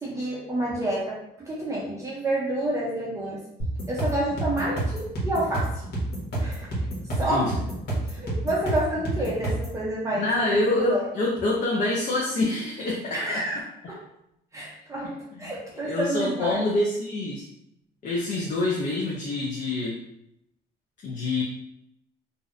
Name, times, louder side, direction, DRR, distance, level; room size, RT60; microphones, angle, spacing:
voice 1, 0.0-3.4 3.9-5.7 6.4-6.7 7.2-7.5 8.1-11.0 13.1-13.6 13.9-14.0 14.5-15.1 15.4-16.6, right 1 dB, 20° right, -5 dB, 0.5 m, -29 dB
sound 1, 3.6-9.8, right 2 dB, 75° left, 1.0 m, -29 dB
voice 2, 7.2-7.5 10.1-13.4 15.8-17.4 18.0-20.0 21.0-21.4, left 2 dB, 50° left, -3 dB, 0.5 m, -26 dB
2.6 x 2.0 x 2.4 m, 0.81 s
cardioid pair, 110°, 17 cm